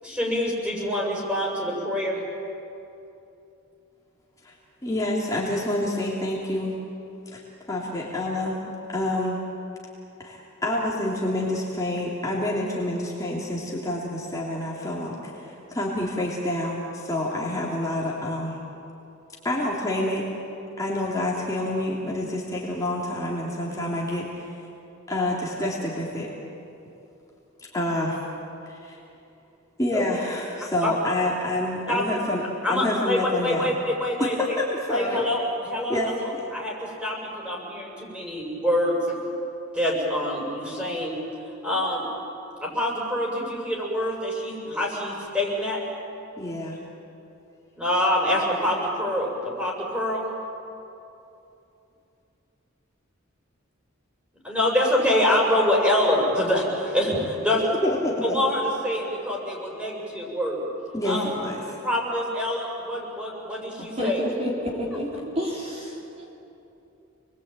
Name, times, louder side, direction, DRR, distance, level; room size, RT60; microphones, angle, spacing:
voice 1, 0.0-2.2 29.9-30.0 31.9-32.0 32.6-34.3 34.9-39.0 39.7-41.2 41.6-42.0 42.6-45.8 47.8-50.3 54.4-57.6 58.2-60.6 61.0-61.2 61.8-64.2, left 1 dB, 5° right, -2 dB, 6.8 m, -25 dB
voice 2, 4.8-6.8 7.3-7.4 7.7-8.6 8.9-9.4 10.2-18.6 19.4-20.3 20.8-24.5 25.1-26.3 27.6-28.2 28.7-29.0 29.8-32.4 32.7-33.7 34.2-35.2 35.9-36.4 46.4-46.8 57.6-58.4 60.9-61.8, left 1 dB, 15° left, -4 dB, 3.3 m, -28 dB
voice 3, 64.0-65.1 65.4-66.3, equal, 30° right, -2 dB, 3.8 m, -29 dB
29.5 x 21.5 x 9.1 m, 2.8 s
head